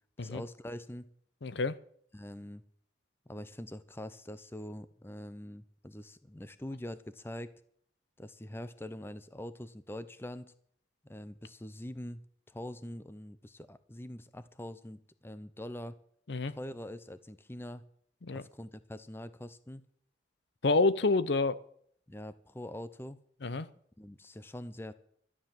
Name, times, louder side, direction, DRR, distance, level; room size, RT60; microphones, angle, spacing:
voice 1, 0.2-1.1 2.1-2.6 3.3-7.5 8.2-10.5 11.0-12.2 12.5-16.0 16.5-17.8 18.3-19.8 22.1-23.2 24.0-24.9, left 1 dB, 10° left, 14 dB, 0.6 m, -44 dB
voice 2, 1.4-1.8 16.3-16.5 18.2-18.4 20.6-21.6 23.4-23.7, left 3 dB, 60° left, 16 dB, 0.7 m, -28 dB
13.0 x 9.8 x 7.3 m, 0.65 s
head